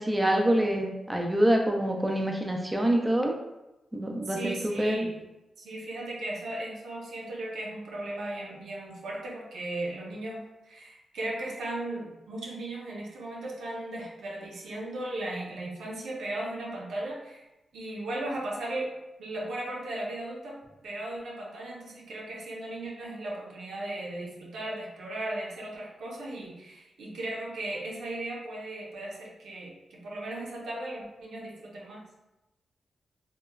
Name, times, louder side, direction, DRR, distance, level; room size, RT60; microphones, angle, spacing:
voice 1, 0.0-3.3 3.9-5.1, right 1 dB, 10° right, 1 dB, 0.3 m, -26 dB
voice 2, 4.2-5.2 5.6-17.5 17.7-18.9 19.2-20.6 20.8-32.0, right 1 dB, 85° right, -3 dB, 0.6 m, -36 dB
3.0 x 2.1 x 2.2 m, 0.97 s
cardioid pair, 90°, 0 cm